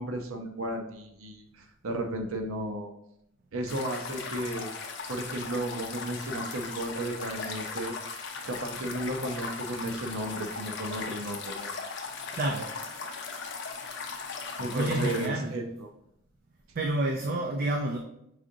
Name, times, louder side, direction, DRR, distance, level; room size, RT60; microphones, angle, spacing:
voice 1, 0.0-2.9 3.5-4.7 5.1-7.9 8.4-12.1 14.6-15.9, right 1 dB, 80° right, 0.7 m, -34 dB
sound 1, 3.7-15.3, left 4 dB, 55° left, 0.5 m, -38 dB
voice 2, 12.3-12.8 14.7-15.7 16.8-18.0, right 1 dB, 45° right, 0.4 m, -29 dB
4.9 x 3.7 x 2.6 m
head